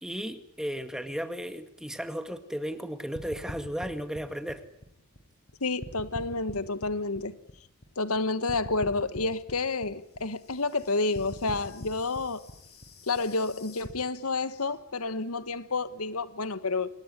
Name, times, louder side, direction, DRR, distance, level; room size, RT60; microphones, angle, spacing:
voice 1, 0.0-4.6, equal, 5° right, 2.1 m, -35 dB
sound 1, 3.2-5.5 5.8-8.2 8.5-13.9, left 1 dB, 50° left, 6.0 m, -43 dB
voice 2, 5.6-7.4 8.0-12.4 13.1-16.9, left 3 dB, 90° left, 1.5 m, -30 dB
28.0 x 21.0 x 9.9 m
head